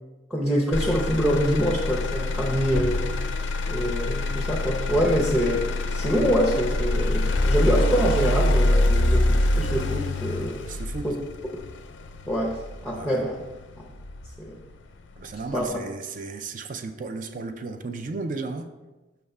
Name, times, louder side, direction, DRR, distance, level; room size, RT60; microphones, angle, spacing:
voice 1, 0.3-3.2 3.7-5.6 5.9-11.1 11.5-11.6 12.3-13.4 13.8-13.9 14.4-14.6 15.5-15.8, equal, ahead, -2 dB, 0.6 m, -25 dB
Motor vehicle (road), 0.7-14.7 15.2-15.7, left 1 dB, 70° left, 0.4 m, -25 dB
voice 2, 10.6-11.2 12.9-13.2 15.2-18.7, right 3 dB, 40° right, 8 dB, 0.4 m, -34 dB
5.6 x 3.4 x 5.3 m, 1.1 s
head